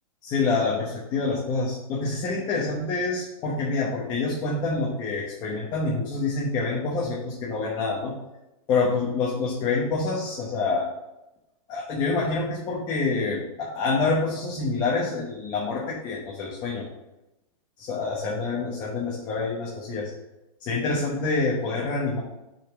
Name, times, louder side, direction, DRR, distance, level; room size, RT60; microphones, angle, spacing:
voice 1, 0.2-8.1 8.7-10.9 11.7-16.8 17.8-20.1 20.6-22.2, left 3 dB, 20° left, -3 dB, 1.0 m, -27 dB
6.3 x 4.2 x 6.0 m, 0.94 s
hypercardioid pair, 160°, 18 cm